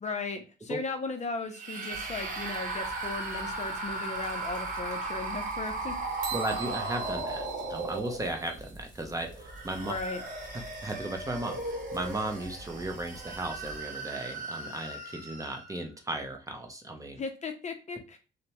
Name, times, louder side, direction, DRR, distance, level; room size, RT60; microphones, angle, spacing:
voice 1, 0.0-6.0 9.8-10.2 17.2-18.2, left 3 dB, 35° left, 6 dB, 0.5 m, -36 dB
sound 1, 1.5-8.6 9.3-15.8, right 2 dB, 40° right, 0.9 m, -37 dB
sound 2, 1.9-13.8, right 1 dB, 20° left, 1.0 m, -50 dB
sound 3, 6.2-8.9, right 10 dB, 65° right, 0.5 m, -42 dB
voice 2, 6.3-9.9 10.6-17.2, right 2 dB, 15° right, 3 dB, 0.6 m, -36 dB
2.7 x 2.1 x 2.8 m, 0.34 s
cardioid pair, 90°, 20 cm